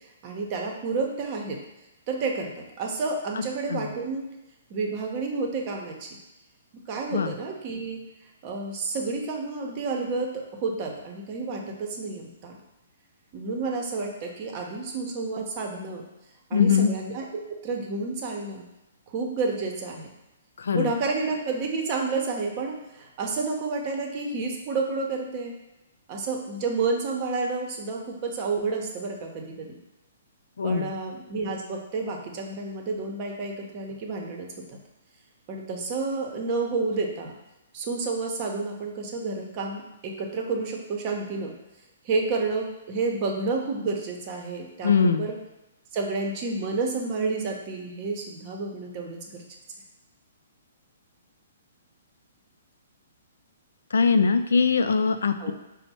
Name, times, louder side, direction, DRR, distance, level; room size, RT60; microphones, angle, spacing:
voice 1, 0.2-1.6 2.1-4.3 4.7-6.1 6.9-8.0 8.4-12.6 13.3-16.0 16.5-17.3 17.6-18.6 19.1-20.1 20.7-25.6 26.1-29.8 30.6-34.8 35.5-37.3 37.7-41.5 42.0-45.3 45.9-49.4 55.4-55.5, right 3 dB, 35° right, 1 dB, 0.7 m, -30 dB
voice 2, 16.5-16.9 20.6-20.9 30.6-30.9 44.8-45.3 53.9-55.5, left 5 dB, 85° left, 8 dB, 0.3 m, -22 dB
4.3 x 2.1 x 4.2 m, 0.96 s
hypercardioid pair, 145°, 0 cm